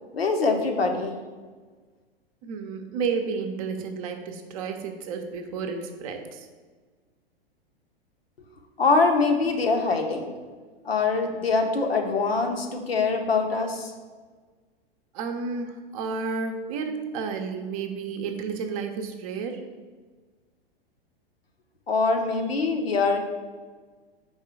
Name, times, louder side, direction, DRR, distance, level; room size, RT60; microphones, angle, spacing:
voice 1, 0.1-1.2 8.8-10.3 10.8-13.9 21.9-23.2, left 4 dB, 75° left, 3 dB, 0.9 m, -23 dB
voice 2, 2.4-6.5 15.1-19.6, right 5 dB, 35° right, 5 dB, 0.7 m, -31 dB
4.8 x 3.6 x 5.6 m, 1.4 s
figure-of-eight pair, 100°, 30 cm